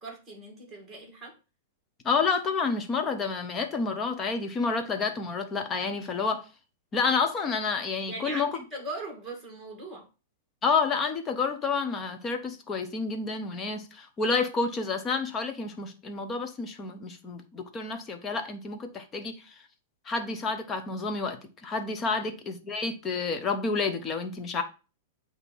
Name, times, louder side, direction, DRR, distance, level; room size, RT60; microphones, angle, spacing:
voice 1, 0.0-1.3 8.1-10.1 22.1-22.4, right 2 dB, 10° right, 2.4 m, -40 dB
voice 2, 2.0-6.5 6.9-8.6 10.6-19.5 20.1-24.6, left 4 dB, 20° left, 0.9 m, -29 dB
8.0 x 2.9 x 5.3 m
supercardioid pair, 155°, 0 cm